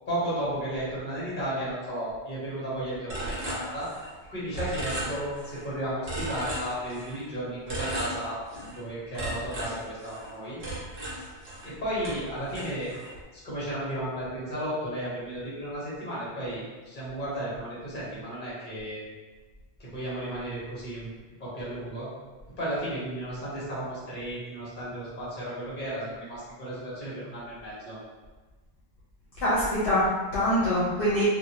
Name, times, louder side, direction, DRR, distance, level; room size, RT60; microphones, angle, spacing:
voice 1, 0.1-3.9 4.3-8.4 8.7-10.6 11.6-12.9 13.3-19.0 19.8-21.1 21.4-22.1 22.6-28.0, right 1 dB, 45° left, -8 dB, 1.3 m, -34 dB
sound 1, 3.1-4.2 4.5-5.6 6.0-7.2 7.7-8.8 9.1-11.7 12.0-13.2, right 1 dB, 70° right, 1.2 m, -36 dB
voice 2, 29.4-31.2, left 1 dB, 70° left, -10 dB, 1.0 m, -24 dB
2.7 x 2.6 x 2.7 m, 1.3 s
omnidirectional pair, 1.2 m